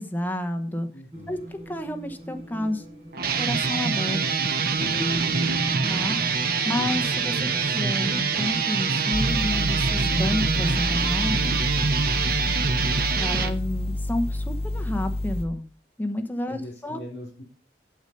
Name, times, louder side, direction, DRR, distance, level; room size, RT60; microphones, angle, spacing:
voice 1, 0.0-0.9 1.3-2.8 3.4-4.5 5.9-11.5 13.2-15.6 16.0-17.0, left 1 dB, 10° left, 6 dB, 0.9 m, -30 dB
voice 2, 0.9-1.4 5.3-5.8 11.9-12.4 16.5-17.4, left 1 dB, 65° left, -5 dB, 4.2 m, -42 dB
sound 1, 1.1-11.6, right 1 dB, 35° right, 5.0 m, -36 dB
sound 2, 3.1-13.5, right 5 dB, 55° right, 1.0 m, -25 dB
sound 3, 9.1-15.4, left 1 dB, 35° left, 1.5 m, -29 dB
8.8 x 8.1 x 5.3 m, 0.40 s
head